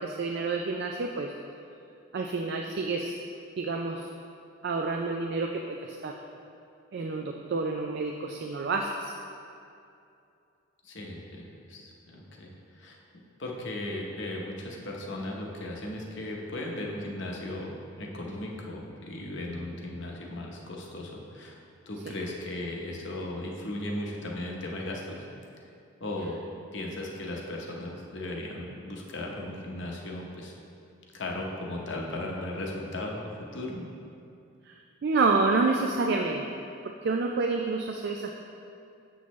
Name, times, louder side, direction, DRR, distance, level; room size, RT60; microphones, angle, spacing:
voice 1, 0.0-1.3 2.1-3.2 3.6-4.1 4.6-6.2 6.9-9.1 22.1-22.2 34.7-34.8 35.0-36.4 37.0-38.5, right 3 dB, 50° right, 1 dB, 0.3 m, -28 dB
voice 2, 10.8-12.9 13.4-21.6 21.9-25.3 26.0-26.4 26.7-30.6 31.1-33.9, left 1 dB, 55° left, -1 dB, 0.8 m, -36 dB
7.2 x 6.1 x 3.1 m, 2.6 s
head